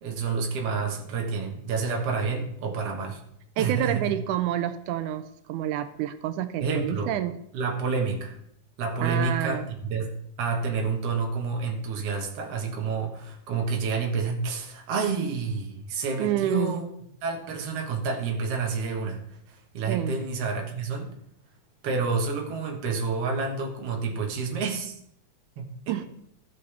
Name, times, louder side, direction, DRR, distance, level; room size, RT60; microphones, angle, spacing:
voice 1, 0.0-3.2 3.6-4.1 6.6-7.1 7.5-8.4 8.8-10.1 10.4-16.8 17.2-19.2 19.5-21.1 21.8-25.0 25.6-26.0, right 4 dB, 55° right, 1 dB, 2.2 m, -29 dB
voice 2, 3.6-5.2 5.5-7.4 9.0-9.7 16.2-16.8 19.9-20.1 25.9-26.1, right 11 dB, 85° right, 11 dB, 2.0 m, -28 dB
14.5 x 6.5 x 3.4 m, 0.75 s
omnidirectional pair, 3.5 m